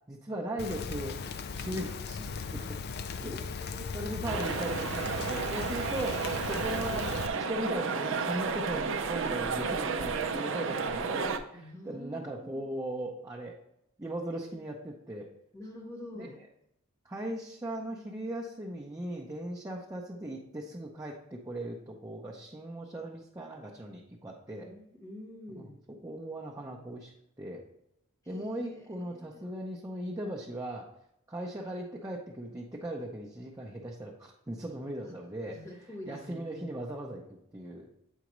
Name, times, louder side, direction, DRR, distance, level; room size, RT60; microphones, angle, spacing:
voice 1, 0.1-1.2 1.6-2.8 3.2-3.3 3.9-13.6 14.0-15.3 16.1-16.3 17.0-24.7 25.5-25.7 26.0-27.1 27.4-27.6 28.3-30.9 31.3-35.6 36.1-37.2 37.5-37.9, right 1 dB, 15° right, -3 dB, 0.6 m, -38 dB
Rain, 0.6-7.3, left 5 dB, 50° left, 0.4 m, -38 dB
voice 2, 3.2-4.0 8.8-8.9 11.1-11.2 11.5-12.6 15.5-16.4 24.6-25.8 28.2-29.4 35.0-35.2 35.5-36.8, left 1 dB, 15° left, 1 dB, 0.9 m, -46 dB
sound 1, 4.3-11.4, right 5 dB, 60° right, 0.5 m, -32 dB
8.1 x 4.9 x 3.1 m, 0.80 s
head